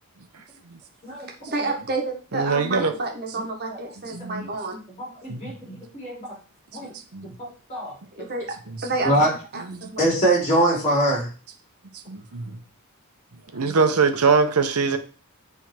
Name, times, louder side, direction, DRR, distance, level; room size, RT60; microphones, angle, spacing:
voice 1, 1.5-4.8 8.2-8.5 8.8-9.3 9.5-10.0, right 3 dB, 45° right, 1 dB, 1.4 m, -29 dB
voice 2, 2.3-2.9 4.1-4.5 5.3-5.5 6.8-7.3 8.7-8.9 9.7-9.9 12.1-12.5 13.5-15.0, right 5 dB, 85° right, 7 dB, 0.9 m, -23 dB
voice 3, 5.0-6.4 6.7-6.9 7.2-8.0 9.0-9.3 10.0-11.3, right 1 dB, 30° left, -3 dB, 3.1 m, -24 dB
7.3 x 3.6 x 4.4 m, 0.37 s
head